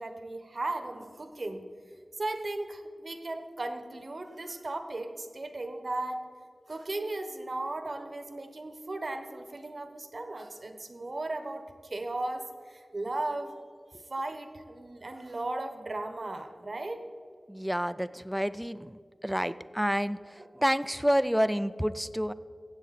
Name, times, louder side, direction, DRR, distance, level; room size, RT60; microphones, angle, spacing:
voice 1, 0.0-1.6 2.2-6.3 6.7-13.6 14.1-17.0 17.8-18.0 19.4-19.6 20.4-20.7, right 2 dB, 55° right, 7 dB, 0.9 m, -36 dB
voice 2, 17.5-20.2 20.6-22.3, equal, 5° right, 15 dB, 0.3 m, -29 dB
16.5 x 7.7 x 4.1 m, 2.1 s
wide cardioid pair, 75°, 0 cm